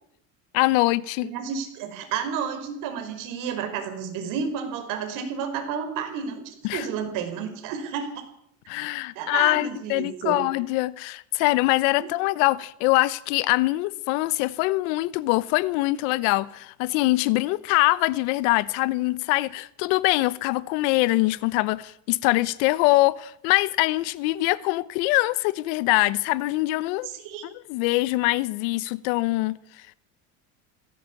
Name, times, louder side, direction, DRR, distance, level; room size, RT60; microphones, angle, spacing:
voice 1, 0.5-1.3 6.6-6.9 8.7-27.1 27.7-29.6, left 20 dB, 80° left, 1.1 m, -23 dB
voice 2, 1.2-8.3 9.2-10.4 12.0-12.1 27.0-27.5, right 7 dB, 60° right, 5.3 m, -31 dB
18.0 x 17.0 x 8.5 m
cardioid pair, 160°, 36 cm